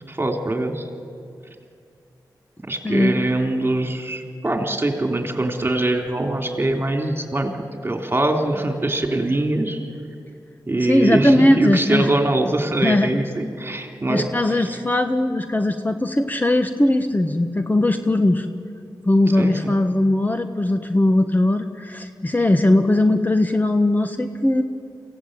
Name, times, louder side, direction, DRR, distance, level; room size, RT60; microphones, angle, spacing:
voice 1, 0.1-0.9 2.7-7.5 7.8-9.8 10.7-14.7 19.3-19.8, right 2 dB, 30° right, 4 dB, 3.4 m, -23 dB
voice 2, 2.8-3.2 10.9-12.1 12.8-13.1 14.1-18.5 19.1-24.6, left 1 dB, 20° left, 7 dB, 1.3 m, -19 dB
23.0 x 16.5 x 9.0 m, 2.4 s
cardioid pair, 50°, 8 cm